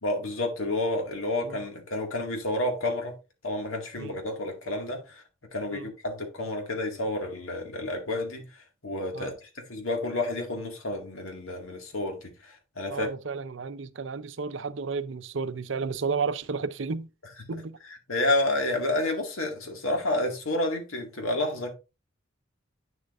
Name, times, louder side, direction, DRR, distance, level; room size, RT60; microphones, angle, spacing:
voice 1, 0.0-3.1 3.4-5.2 5.5-8.4 8.8-13.1 18.1-21.7, left 1 dB, 90° left, 2.1 m, -30 dB
voice 2, 12.9-17.1 17.5-17.8, right 5 dB, 65° right, 0.6 m, -32 dB
9.1 x 6.9 x 2.5 m
head